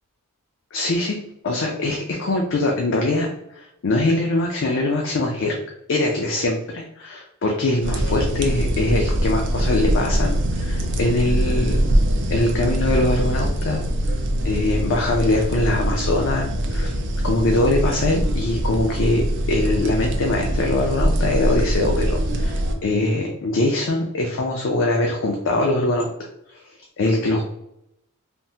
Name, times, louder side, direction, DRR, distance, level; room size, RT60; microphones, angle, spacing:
voice 1, 0.7-1.2 1.4-3.3 3.6-5.6 5.9-11.8 12.3-13.8 14.1-14.2 14.4-17.0 17.2-26.1 27.0-27.4, left 2 dB, 60° left, 1 dB, 0.5 m, -22 dB
sound 1, 7.8-22.7, equal, 55° right, 0.5 m, -23 dB
3.4 x 2.0 x 2.7 m, 0.79 s
head